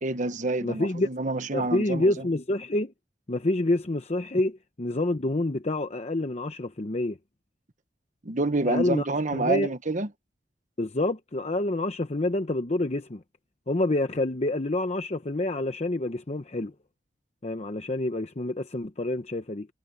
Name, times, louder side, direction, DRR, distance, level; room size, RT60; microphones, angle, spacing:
voice 1, 0.0-2.1 8.2-10.1, right 2 dB, 45° right, 1.2 m, -28 dB
voice 2, 0.6-1.1 1.5-2.9 3.3-7.2 8.6-9.1 9.3-9.7 10.8-13.2 13.7-16.7 17.4-19.7, left 2 dB, 40° left, 0.9 m, -27 dB
head